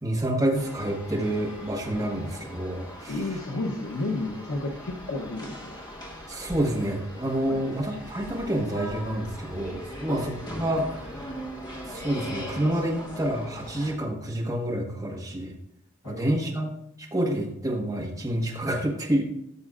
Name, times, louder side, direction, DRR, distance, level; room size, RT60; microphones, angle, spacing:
voice 1, 0.0-3.1 6.3-11.2 11.9-15.5 16.0-16.7 17.1-19.2, right 1 dB, 15° right, -2 dB, 1.5 m, -28 dB
sound 1, 0.5-14.0, equal, 20° left, 1.3 m, -40 dB
voice 2, 3.1-5.7 7.5-7.6 10.1-10.2 16.0-16.4, left 2 dB, 85° left, 1 dB, 0.9 m, -32 dB
14.5 x 6.5 x 2.5 m, 0.79 s
head